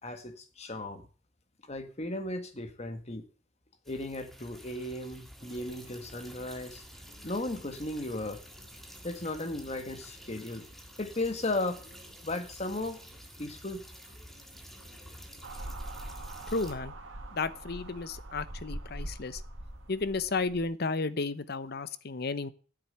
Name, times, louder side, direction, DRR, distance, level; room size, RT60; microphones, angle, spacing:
voice 1, 0.0-1.0 1.7-3.2 3.9-6.8 7.2-8.4 9.0-10.7 11.0-11.8 12.2-13.0 13.4-13.8, left 2 dB, 35° left, 8 dB, 1.6 m, -35 dB
sound 1, 3.8-16.7, equal, ahead, 1.8 m, -51 dB
sound 2, 5.4-16.8, equal, 35° right, 3.9 m, -58 dB
sound 3, 15.4-20.6, right 1 dB, 90° right, 2.0 m, -42 dB
voice 2, 16.5-16.9 17.3-19.4 19.9-22.5, left 3 dB, 55° left, 15 dB, 0.8 m, -33 dB
9.0 x 7.5 x 8.7 m, 0.41 s
head